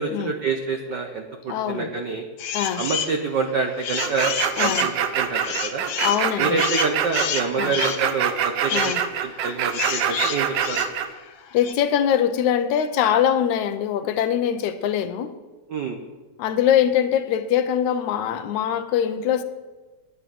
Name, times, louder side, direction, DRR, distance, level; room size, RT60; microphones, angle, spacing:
voice 1, 0.0-2.2 2.8-4.3 4.6-5.8 6.4-8.9 9.2-10.8 15.7-16.0, right 4 dB, 85° right, 0.9 m, -27 dB
voice 2, 1.5-1.9 2.5-2.9 4.6-4.9 6.0-6.6 7.6-7.7 8.7-9.0 11.5-15.4 16.4-19.4, left 9 dB, 80° left, 2.2 m, -22 dB
sound 1, 2.4-3.2 3.6-11.7, left 8 dB, 65° left, 1.7 m, -30 dB
sound 2, 4.0-11.1, right 8 dB, 65° right, 1.7 m, -24 dB
12.0 x 10.0 x 7.7 m
omnidirectional pair, 3.4 m